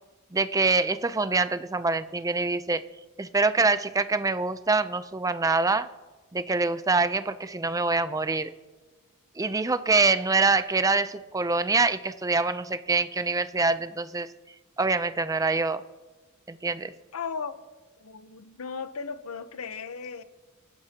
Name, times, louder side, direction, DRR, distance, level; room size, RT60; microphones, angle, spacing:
voice 1, 0.3-2.8 3.2-5.9 6.3-8.5 9.4-14.3 14.8-15.8 16.5-16.9, right 3 dB, 15° right, 0.5 m, -25 dB
voice 2, 17.1-17.6 18.0-20.2, left 5 dB, 85° left, 0.8 m, -36 dB
24.5 x 11.5 x 2.9 m
head